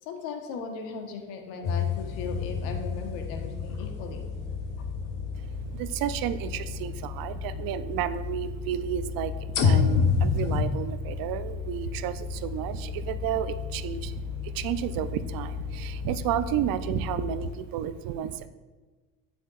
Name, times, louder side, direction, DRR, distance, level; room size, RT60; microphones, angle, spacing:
voice 1, 0.0-4.2 4.8-4.9 8.7-8.8, left 5 dB, 80° left, 4 dB, 1.2 m, -38 dB
sound 1, 1.6-5.9 6.6-6.7 9.5-10.6, left 5 dB, 50° left, 1.1 m, -27 dB
sound 2, 1.9-17.5, left 5 dB, 25° left, 1.7 m, -36 dB
voice 2, 5.7-18.5, right 10 dB, 55° right, 12 dB, 0.6 m, -32 dB
8.3 x 8.1 x 2.4 m, 1.3 s
supercardioid pair, 90°, 42 cm